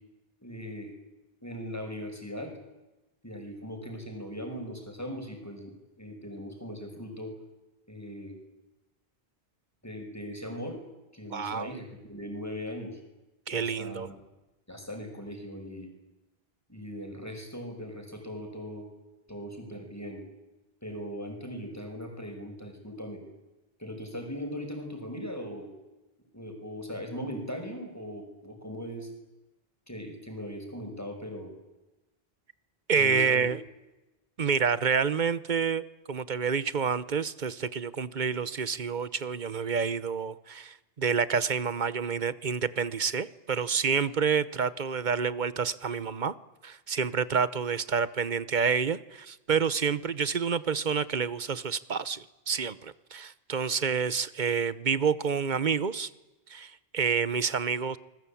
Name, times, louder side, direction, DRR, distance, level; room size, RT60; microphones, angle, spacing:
voice 1, 0.4-0.9 1.4-2.5 3.2-7.3 7.9-8.4 9.8-10.8 11.1-13.0 13.5-14.2 14.7-15.9 16.7-18.9 19.3-20.2 20.8-23.2 23.8-25.7 26.3-29.1 29.9-31.5 32.9-33.5, equal, 15° left, 3 dB, 5.7 m, -39 dB
voice 2, 11.3-11.7 13.5-14.1 32.9-33.6 34.4-46.3 46.6-56.1 56.5-58.0, right 6 dB, 50° right, 16 dB, 1.1 m, -28 dB
27.5 x 20.5 x 8.6 m, 1.0 s
omnidirectional pair, 1.0 m